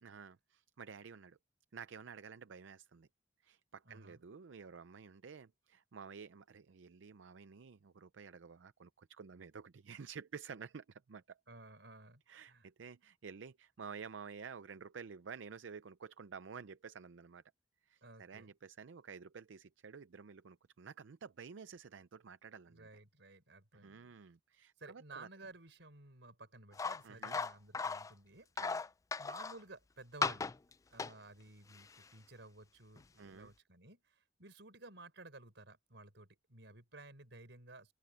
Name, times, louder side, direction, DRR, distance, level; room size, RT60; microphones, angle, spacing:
voice 1, 0.0-1.4 1.7-3.1 3.4-11.4 12.3-17.4 17.8-22.9 23.7-25.3 27.0-27.4 28.6-28.8 33.2-33.5, right 6 dB, 90° right, 0.5 m, -51 dB
voice 2, 3.8-4.2 11.5-12.7 18.0-18.5 22.7-24.1 24.8-28.5 29.2-30.5 30.9-37.9, right 2 dB, 70° right, 4.9 m, -55 dB
sound 1, 26.7-28.1 28.6-29.6 30.2-30.7 31.0-31.1 31.7-31.8 33.0-33.1, left 4 dB, 20° left, 0.3 m, -37 dB
head